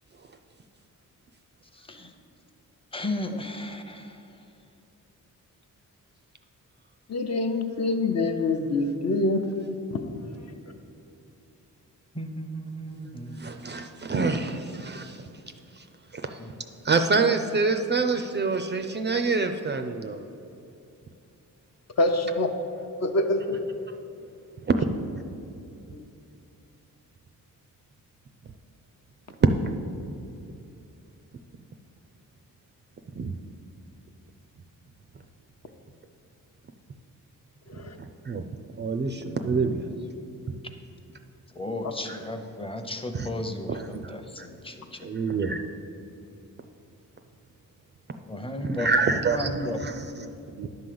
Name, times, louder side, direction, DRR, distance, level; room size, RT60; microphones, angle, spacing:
voice 1, 1.7-2.1 2.9-4.3 12.1-13.4 14.2-14.5 16.4-16.5 41.5-45.1 48.1-49.8, left 1 dB, 15° left, 6 dB, 0.7 m, -35 dB
voice 2, 7.1-9.4 9.9-10.2 22.0-22.5 23.0-23.6 25.9-26.0 37.7-38.0, left 2 dB, 50° left, 5 dB, 0.7 m, -25 dB
voice 3, 13.4-15.2 16.1-16.4 16.8-20.2 24.8-24.9 33.2-33.3 38.3-38.5 38.8-39.9 42.1-42.2 43.1-43.3 44.0-44.1 44.4-44.5 45.0-45.6 48.6-49.5 49.8-50.0 50.5-50.7, right 4 dB, 35° right, 6 dB, 0.4 m, -26 dB
11.0 x 3.9 x 7.6 m, 2.7 s
wide cardioid pair, 130°, 34 cm